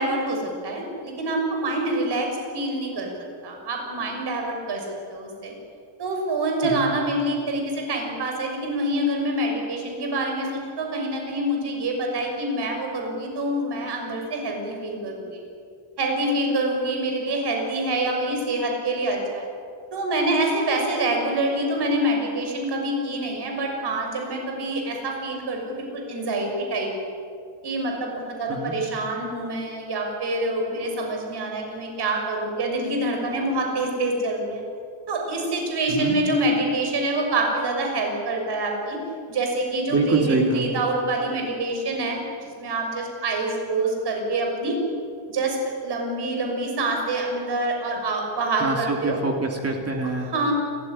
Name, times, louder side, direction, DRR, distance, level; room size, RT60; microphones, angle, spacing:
voice 1, 0.0-3.1 3.4-5.5 6.0-15.4 16.0-19.4 19.9-26.9 27.6-34.6 35.1-39.0 39.3-42.2 42.6-44.8 45.3-45.6 45.8-49.2 50.2-50.5, right 1 dB, 55° right, 2 dB, 6.3 m, -26 dB
voice 2, 39.9-40.6 48.6-50.3, right 3 dB, 30° right, 2 dB, 2.8 m, -25 dB
29.0 x 15.0 x 10.0 m, 2.3 s
cardioid pair, 155°, 49 cm